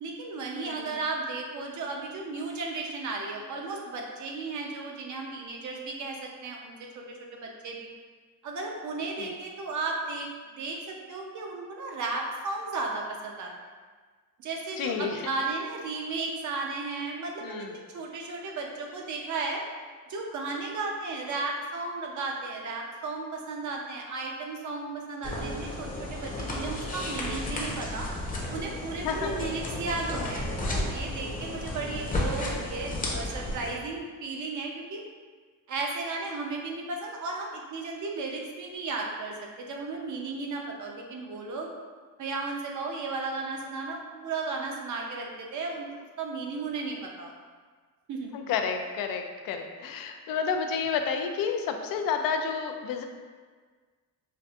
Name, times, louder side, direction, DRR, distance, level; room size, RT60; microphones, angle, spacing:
voice 1, 0.0-7.0 7.3-7.9 8.4-13.5 14.4-19.6 20.1-28.1 28.5-35.0 35.7-41.7 42.2-45.9 46.2-47.3 48.1-48.3, right 3 dB, 55° right, 0 dB, 0.7 m, -34 dB
voice 2, 0.7-1.0 9.2-9.4 14.8-15.2 17.4-17.8 29.0-29.3 48.3-53.0, left 6 dB, 80° left, 5 dB, 0.5 m, -30 dB
sound 1, 25.2-33.7, left 1 dB, 25° left, 0.7 m, -33 dB
5.4 x 2.5 x 2.4 m, 1.5 s
cardioid pair, 125°, 34 cm